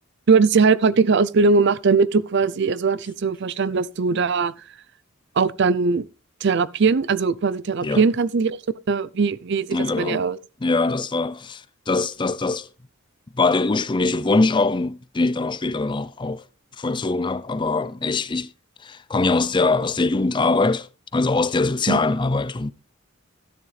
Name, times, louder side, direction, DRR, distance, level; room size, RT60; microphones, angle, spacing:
voice 1, 0.3-4.5 5.4-6.1 6.4-8.6 8.9-10.4 21.9-22.0, right 4 dB, 55° right, 0.5 m, -20 dB
voice 2, 9.7-10.2 10.6-12.7 13.4-16.4 16.8-18.5 18.8-22.7, left 3 dB, 20° left, 0.5 m, -22 dB
12.5 x 11.0 x 3.3 m
head